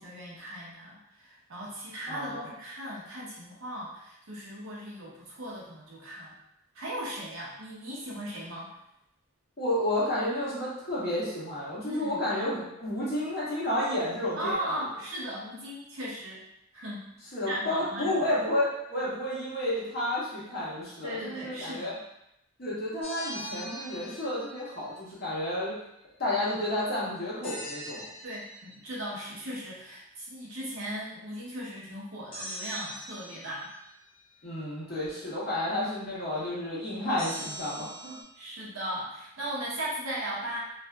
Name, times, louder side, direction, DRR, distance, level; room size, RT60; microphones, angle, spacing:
voice 1, 0.0-6.4 6.7-8.7 11.8-12.2 14.4-16.4 16.7-17.1 17.5-18.1 21.0-21.9 28.2-33.7 38.4-40.6, right 1 dB, 80° right, -5 dB, 0.8 m, -37 dB
voice 2, 2.1-2.5 9.6-14.8 17.3-21.9 22.6-25.7 26.2-28.1 34.4-38.2, left 1 dB, 50° left, -8 dB, 1.0 m, -31 dB
sound 1, 23.0-25.1 27.4-28.9 32.3-34.0 37.2-38.2, equal, 25° left, 0.6 m, -42 dB
2.6 x 2.4 x 2.2 m, 0.81 s
head